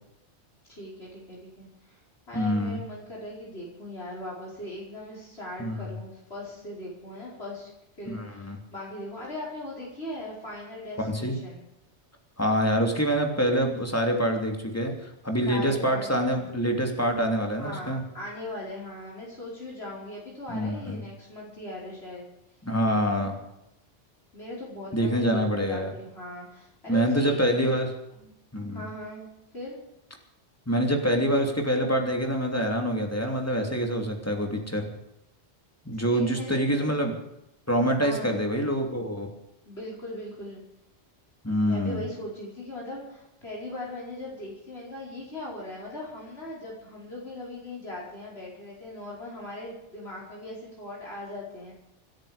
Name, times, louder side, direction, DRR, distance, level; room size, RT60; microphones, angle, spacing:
voice 1, 0.7-7.7 8.0-11.6 15.5-16.4 17.6-22.3 24.3-27.7 28.1-28.3 28.7-29.2 29.5-29.8 36.1-37.0 38.0-38.4 39.7-40.6 41.6-51.7, left 1 dB, 60° left, -5 dB, 5.2 m, -39 dB
voice 2, 2.3-2.8 5.6-5.8 8.1-8.6 11.0-11.4 12.4-18.0 20.5-21.0 22.6-23.4 24.9-25.9 26.9-27.9 28.5-28.9 30.7-34.9 35.8-37.2 37.7-39.3 41.4-42.0, equal, 10° left, 2 dB, 3.0 m, -26 dB
26.0 x 10.5 x 5.2 m, 0.85 s
omnidirectional pair, 1.2 m